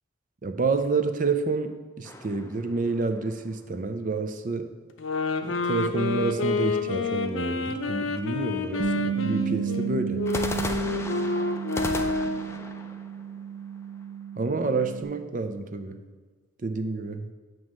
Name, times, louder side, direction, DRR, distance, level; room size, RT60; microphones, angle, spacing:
voice 1, 0.4-4.7 5.4-10.2 14.4-16.0 16.6-17.3, right 3 dB, 40° right, 8 dB, 0.5 m, -29 dB
sound 1, 2.0-3.5 10.3-14.2, left 2 dB, 15° left, 0.4 m, -36 dB
sound 2, 5.0-12.5, left 3 dB, 70° left, 0.6 m, -29 dB
Bass guitar, 8.8-15.0, right 8 dB, 70° right, 0.7 m, -32 dB
9.1 x 3.1 x 6.2 m, 1.4 s
head